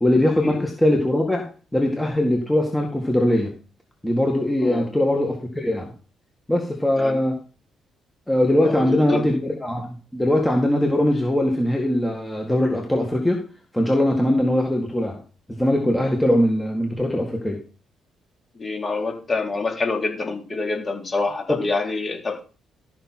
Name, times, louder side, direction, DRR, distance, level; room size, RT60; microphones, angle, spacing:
voice 1, 0.0-1.4 1.7-3.5 4.0-5.9 6.5-7.3 8.3-13.4 13.7-15.2 15.5-17.6 21.5-21.6, left 1 dB, 10° left, 1 dB, 1.9 m, -21 dB
voice 2, 8.6-9.4 18.5-22.4, left 3 dB, 35° left, 1 dB, 3.7 m, -27 dB
13.0 x 5.9 x 4.4 m, 0.36 s
cardioid pair, 90°, 0 cm